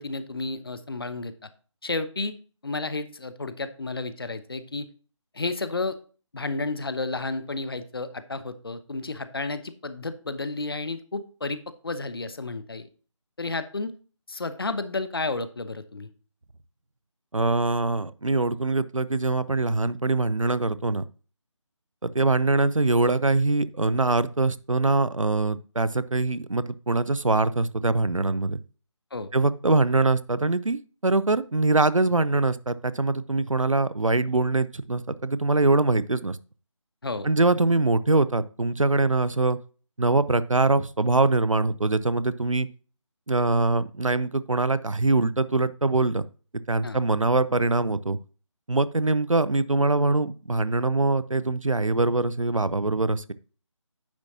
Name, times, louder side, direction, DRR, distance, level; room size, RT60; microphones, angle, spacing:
voice 1, 0.0-1.5 1.8-2.3 2.6-4.9 5.3-6.0 6.3-12.9 13.4-13.9 14.3-16.1 29.1-29.3 37.0-37.3 46.8-47.0, left 3 dB, 50° left, 12 dB, 0.9 m, -32 dB
voice 2, 17.3-21.0 22.1-28.6 29.3-36.4 37.2-39.6 40.0-42.7 43.3-46.2 46.7-48.2 48.7-53.3, right 2 dB, 90° right, 16 dB, 0.7 m, -23 dB
9.7 x 7.2 x 2.8 m, 0.38 s
figure-of-eight pair, 160°, 16 cm